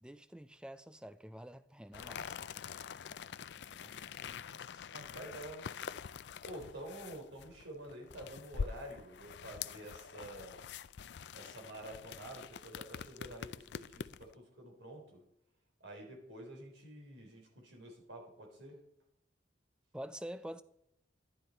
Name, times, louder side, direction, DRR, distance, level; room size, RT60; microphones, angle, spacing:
voice 1, 0.0-2.5 4.7-4.9 19.9-20.6, right 1 dB, 5° right, 0.4 m, -47 dB
sound 1, 1.9-14.3, left 6 dB, 65° left, 0.4 m, -45 dB
voice 2, 3.6-4.1 4.9-5.7 6.4-10.7 11.3-15.2 15.8-18.8, right 1 dB, 70° right, 3.8 m, -49 dB
11.5 x 11.5 x 4.4 m
head